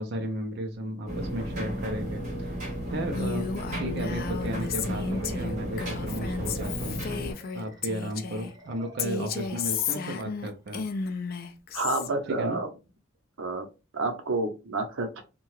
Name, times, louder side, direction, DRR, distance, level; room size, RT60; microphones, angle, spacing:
voice 1, 0.0-2.6 2.9-3.5 3.7-7.0 7.5-10.9 12.4-12.6, right 1 dB, 55° right, 4 dB, 0.4 m, -34 dB
sound 1, 1.1-7.3, equal, 40° right, 1.0 m, -34 dB
Female speech woman speaking, 3.1-8.5 9.0-12.1, left 6 dB, 50° left, 0.3 m, -33 dB
sound 2, 4.1-10.6, right 1 dB, 20° right, 0.7 m, -50 dB
voice 2, 11.7-12.7 13.4-13.7 13.9-15.2, right 2 dB, 90° right, 5 dB, 0.7 m, -29 dB
2.7 x 2.2 x 3.1 m, 0.28 s
head